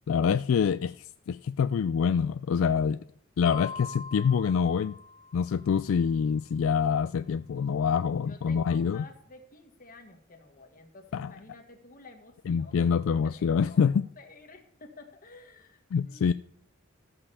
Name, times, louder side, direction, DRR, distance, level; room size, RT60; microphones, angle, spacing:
voice 1, 0.1-3.0 3.4-4.9 5.3-9.0 11.1-11.3 12.5-14.1 15.9-16.3, left 6 dB, 75° left, 0.3 m, -26 dB
sound 1, 3.5-6.0, left 6 dB, 25° left, 2.0 m, -42 dB
voice 2, 8.2-16.3, left 3 dB, 45° left, 1.6 m, -51 dB
14.0 x 5.5 x 6.8 m
head